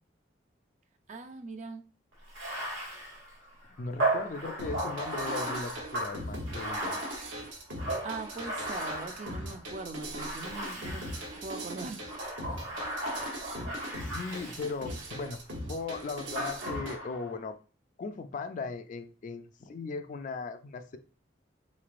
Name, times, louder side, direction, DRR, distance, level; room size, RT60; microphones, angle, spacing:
voice 1, 1.1-1.8 8.0-11.0 11.4-12.0, right 3 dB, 40° right, 0.4 m, -41 dB
Bathtub (filling or washing), 2.2-9.6 10.2-11.5 12.0-15.2 16.4-17.3, right 1 dB, 90° right, 1.2 m, -36 dB
voice 2, 3.8-7.0 14.0-15.4 15.7-17.6 18.0-21.0, left 4 dB, 40° left, 0.3 m, -38 dB
sound 1, 4.6-16.9, right 1 dB, 70° right, 1.0 m, -40 dB
3.6 x 3.1 x 2.5 m
head